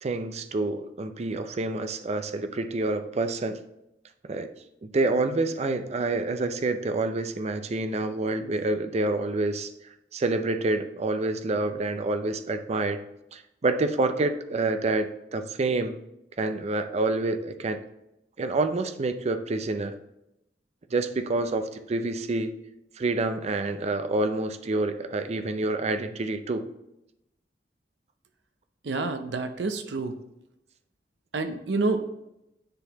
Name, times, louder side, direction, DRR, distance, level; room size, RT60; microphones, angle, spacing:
voice 1, 0.0-3.6 4.2-4.5 4.8-9.7 10.1-13.0 13.3-16.0 16.4-17.8 18.4-20.0 20.9-22.5 23.0-26.6, right 2 dB, 40° right, 9 dB, 0.5 m, -27 dB
voice 2, 28.8-30.2 31.3-32.1, right 3 dB, 80° right, 8 dB, 0.6 m, -28 dB
9.7 x 4.0 x 2.9 m, 0.87 s
head